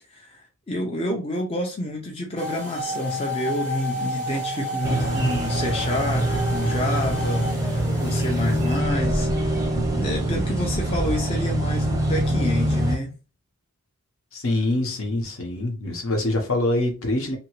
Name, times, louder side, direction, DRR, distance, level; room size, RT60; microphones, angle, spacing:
voice 1, 0.1-9.6 9.9-13.1, left 1 dB, 25° left, 0.5 m, -29 dB
sound 1, 2.4-8.8, left 1 dB, 10° left, 1.0 m, -31 dB
sound 2, 4.8-13.0, right 1 dB, 15° right, 0.6 m, -24 dB
voice 2, 14.3-17.4, left 2 dB, 65° left, 0.9 m, -25 dB
2.8 x 2.6 x 3.0 m
head